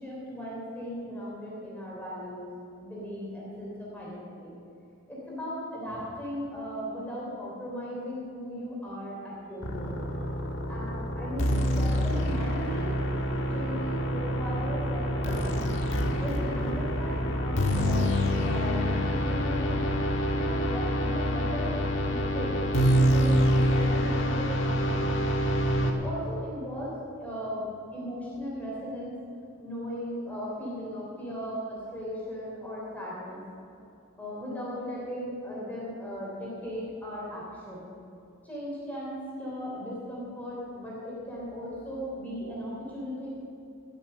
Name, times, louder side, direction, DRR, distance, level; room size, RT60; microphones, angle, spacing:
voice 1, 0.0-2.5 2.8-4.6 5.1-10.0 10.7-13.0 13.5-15.6 16.2-18.1 18.4-19.8 20.3-21.7 22.1-22.6 22.9-25.1 25.8-29.2 29.6-33.4 34.2-37.9 38.4-43.3, equal, 10° left, -6 dB, 3.4 m, -37 dB
sound 1, 9.6-25.9, equal, 60° left, 1.4 m, -26 dB
18.0 x 7.4 x 6.7 m, 2.7 s
head